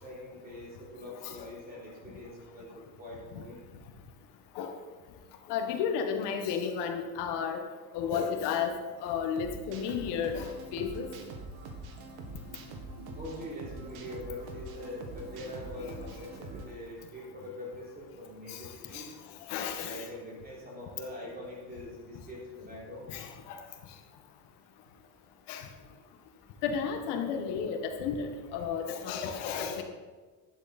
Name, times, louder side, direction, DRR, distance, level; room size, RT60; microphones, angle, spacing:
voice 1, 0.0-3.7 13.1-19.1 19.8-23.1, left 1 dB, 20° right, -4 dB, 3.6 m, -43 dB
voice 2, 5.5-7.6 7.9-8.7 9.0-11.1 18.5-18.6 18.9-19.0 19.5-20.0 23.1-23.3 25.5-25.6 26.6-29.8, left 7 dB, 75° left, 4 dB, 1.7 m, -32 dB
sound 1, 9.4-16.7, right 2 dB, 65° right, 1.8 m, -44 dB
11.5 x 11.0 x 4.3 m, 1.4 s
cardioid pair, 175°, 41 cm